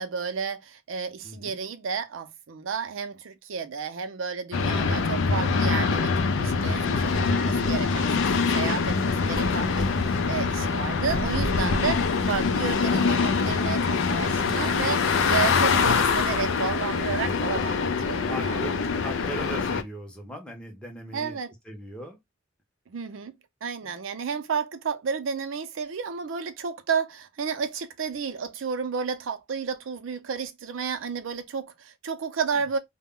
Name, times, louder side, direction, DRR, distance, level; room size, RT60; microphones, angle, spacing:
voice 1, 0.0-8.1 8.5-18.7 19.0-19.1 21.1-21.5 22.9-23.3 23.6-32.8, right 6 dB, 80° right, 0.5 m, -32 dB
voice 2, 1.2-1.6 9.0-9.3 18.3-21.4 21.7-22.2 23.8-23.9, right 1 dB, 5° left, 0.6 m, -39 dB
sound 1, 4.5-19.8, left 4 dB, 80° left, 0.4 m, -24 dB
2.1 x 2.0 x 3.5 m
head